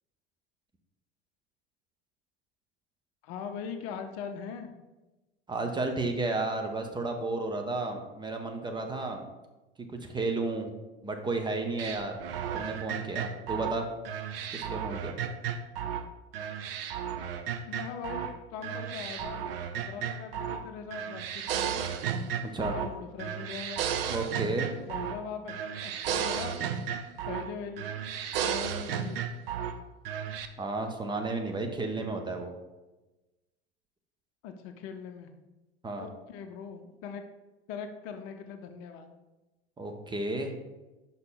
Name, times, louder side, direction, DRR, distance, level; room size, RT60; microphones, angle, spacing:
voice 1, 3.2-4.7 17.7-21.9 22.6-23.8 24.8-26.6 27.3-27.9 28.4-29.2 34.4-35.4 36.0-37.2 37.7-39.1, left 6 dB, 45° left, 6 dB, 0.7 m, -41 dB
voice 2, 5.5-9.3 10.0-10.7 11.0-12.2 12.5-13.9 14.5-15.2 22.4-22.7 24.1-24.7 30.6-32.5 35.8-36.1 39.8-40.5, right 3 dB, 15° right, 4 dB, 0.7 m, -32 dB
sound 1, 11.8-16.1 16.3-18.3 18.6-20.6 20.9-22.9 23.2-25.2 25.5-27.5 27.8-29.7 30.0-30.5, right 8 dB, 65° right, 0.6 m, -34 dB
5.7 x 5.6 x 3.8 m, 1.1 s
figure-of-eight pair, 80°, 32 cm